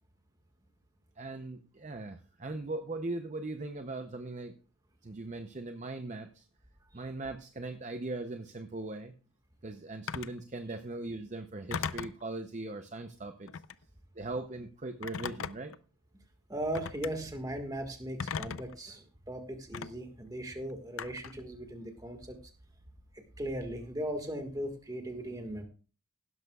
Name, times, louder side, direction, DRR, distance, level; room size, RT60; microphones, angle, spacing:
voice 1, 1.2-4.5 5.0-6.4 6.9-9.1 9.6-13.5 14.2-15.8, right 2 dB, 35° right, 7 dB, 0.6 m, -39 dB
Telephone, 10.1-10.4 11.7-12.2 13.5-13.8 15.0-15.8 16.7-17.1 18.2-18.8 19.7-19.9 21.0-21.4, left 6 dB, 70° left, 0.5 m, -37 dB
voice 2, 16.5-22.4 23.1-25.6, right 1 dB, 15° right, 5 dB, 1.6 m, -38 dB
16.0 x 12.5 x 2.3 m, 0.36 s
head